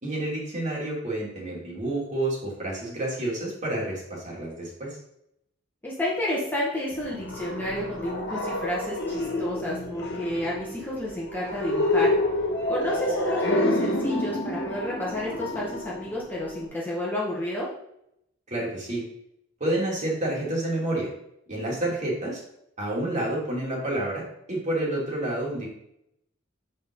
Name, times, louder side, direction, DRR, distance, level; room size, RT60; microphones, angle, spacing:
voice 1, 0.0-5.0 18.5-19.0 19.6-21.1 21.5-22.4 22.8-25.7, right 1 dB, 35° right, -4 dB, 2.8 m, -29 dB
voice 2, 5.8-12.1 12.7-17.7, left 1 dB, 10° left, -6 dB, 1.5 m, -31 dB
sound 1, 6.9-16.7, left 1 dB, 55° left, 1.7 m, -28 dB
8.1 x 5.5 x 3.9 m, 0.77 s
head